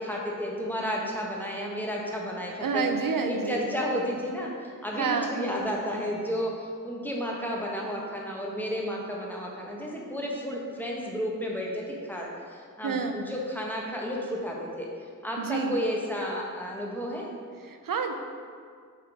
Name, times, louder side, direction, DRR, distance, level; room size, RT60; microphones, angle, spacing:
voice 1, 0.0-2.8 3.3-11.8 12.1-12.3 12.8-14.9 15.2-17.2, equal, 5° left, -3 dB, 1.2 m, -32 dB
voice 2, 2.6-3.7 5.0-5.4 12.8-13.2 15.4-15.8 17.6-18.1, right 5 dB, 80° right, 5 dB, 0.6 m, -28 dB
6.5 x 3.7 x 4.8 m, 2.1 s
wide cardioid pair, 75°, 33 cm